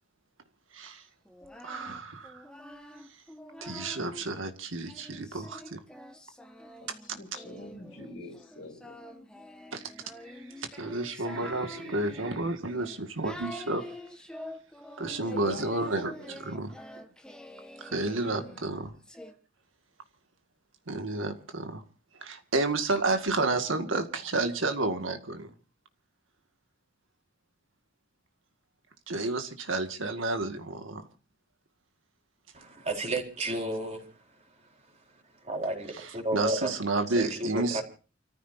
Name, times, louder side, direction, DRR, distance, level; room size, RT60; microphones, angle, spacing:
voice 1, 0.7-1.0 1.6-2.4 3.6-5.8 9.7-9.8 10.3-13.9 15.0-16.1 16.4-16.8 17.8-18.9 20.9-21.8 22.2-25.5 29.1-31.1 35.9-37.8, right 2 dB, 85° right, 2.0 m, -31 dB
Singing, 1.3-4.3 4.8-19.3, left 1 dB, 5° left, 1.4 m, -46 dB
voice 2, 6.8-9.0 15.1-16.3 17.9-18.6, left 2 dB, 70° left, 3.4 m, -44 dB
voice 3, 32.5-34.1 35.4-36.8 37.1-37.8, right 1 dB, 35° right, 4.3 m, -32 dB
29.5 x 14.5 x 2.7 m
head